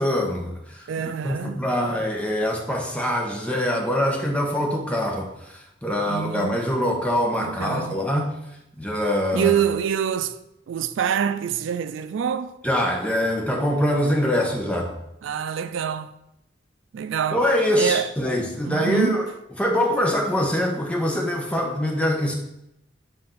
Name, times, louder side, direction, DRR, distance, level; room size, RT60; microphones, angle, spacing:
voice 1, 0.0-0.9 1.2-8.4 8.8-9.5 12.6-15.0 17.3-19.3 19.6-22.3, equal, 5° left, 0.8 m, -24 dB
voice 2, 0.9-1.7 6.1-6.6 7.4-8.0 9.3-10.4 10.7-12.5 15.2-16.1 16.9-17.4 17.8-18.1 18.6-19.2, right 8 dB, 90° right, 0.3 m, -25 dB
7.5 x 2.6 x 5.6 m
head